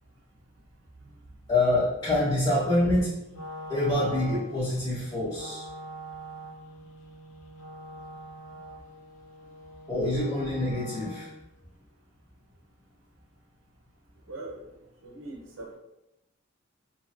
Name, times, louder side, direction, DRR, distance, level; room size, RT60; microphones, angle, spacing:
voice 1, 1.5-3.1 3.7-5.6 9.9-11.3, left 1 dB, 25° left, -12 dB, 1.0 m, -26 dB
Wind instrument woodwind instrument, 3.3-11.5, equal, 85° left, 0.7 m, -44 dB
voice 2, 14.3-14.6 15.0-15.8, right 2 dB, 75° right, 0 dB, 0.7 m, -41 dB
2.9 x 2.7 x 2.5 m, 0.87 s
head